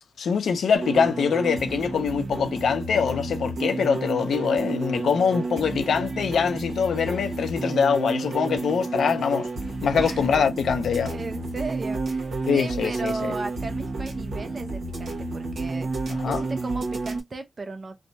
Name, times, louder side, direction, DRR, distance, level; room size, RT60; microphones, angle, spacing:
voice 1, 0.2-9.5 9.8-11.1 12.5-13.3 16.1-16.4, left 6 dB, 90° left, 0.5 m, -24 dB
sound 1, 0.7-17.2, right 3 dB, 85° right, 1.0 m, -31 dB
voice 2, 9.9-10.3 11.1-15.9 16.2-18.0, right 3 dB, 50° right, 0.6 m, -36 dB
3.2 x 2.2 x 2.6 m
cardioid pair, 50°, 0 cm